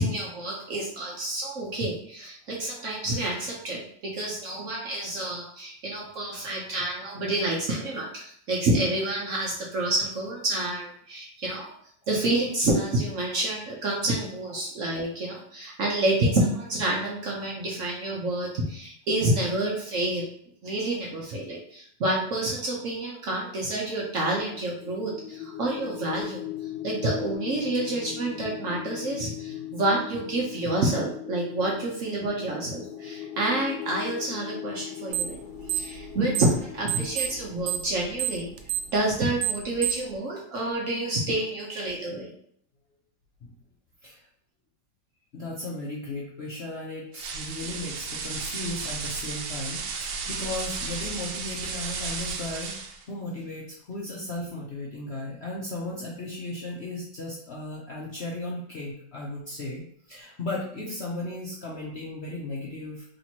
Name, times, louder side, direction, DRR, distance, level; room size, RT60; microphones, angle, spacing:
voice 1, 0.0-11.7 12.1-20.3 20.6-35.4 35.7-38.5 38.9-42.3, right 2 dB, 55° right, -2 dB, 0.9 m, -28 dB
sound 1, 24.1-39.0, left 12 dB, 85° left, 1.3 m, -39 dB
sound 2, 35.1-35.4 35.6-36.6 36.9-40.1, right 12 dB, 90° right, 1.3 m, -28 dB
voice 2, 45.3-52.8 53.1-63.0, left 2 dB, 55° left, -4 dB, 0.7 m, -36 dB
sound 3, 47.1-53.0, right 4 dB, 75° right, 1.2 m, -34 dB
3.3 x 2.9 x 4.3 m, 0.64 s
omnidirectional pair, 2.0 m